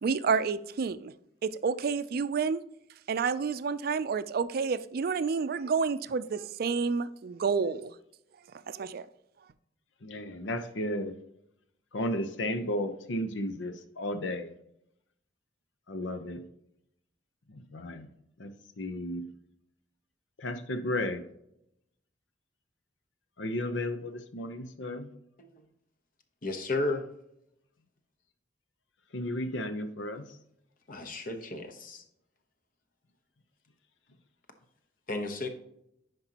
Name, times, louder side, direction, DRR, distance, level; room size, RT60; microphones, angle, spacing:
voice 1, 0.0-1.1 1.4-2.6 3.1-7.9 8.7-9.0, right 5 dB, 55° right, 14 dB, 0.4 m, -29 dB
voice 2, 10.0-11.2 11.9-14.5 15.9-16.4 17.5-18.1 18.4-19.3 20.4-21.2 23.4-25.1 29.1-30.4, left 1 dB, 90° left, 9 dB, 0.8 m, -34 dB
voice 3, 26.4-27.0 30.9-32.0 35.1-35.5, left 2 dB, 50° left, 7 dB, 1.0 m, -33 dB
9.8 x 5.2 x 2.9 m, 0.78 s
head